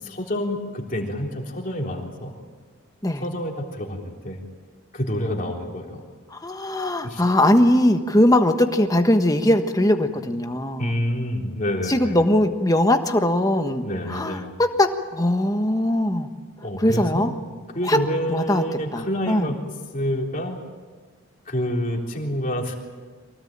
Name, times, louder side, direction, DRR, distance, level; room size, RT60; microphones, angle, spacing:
voice 1, 0.0-2.3 3.2-4.4 4.9-6.0 7.0-7.2 10.8-12.2 13.8-14.5 16.6-17.4 17.7-19.5 19.9-20.6 21.5-22.7, equal, 40° left, 0 dB, 3.7 m, -28 dB
voice 2, 6.3-10.9 11.9-16.3 16.8-17.3 17.8-18.0 18.3-18.6 18.9-19.5, left 1 dB, 15° left, 6 dB, 1.4 m, -20 dB
24.5 x 18.0 x 8.9 m, 1.4 s
head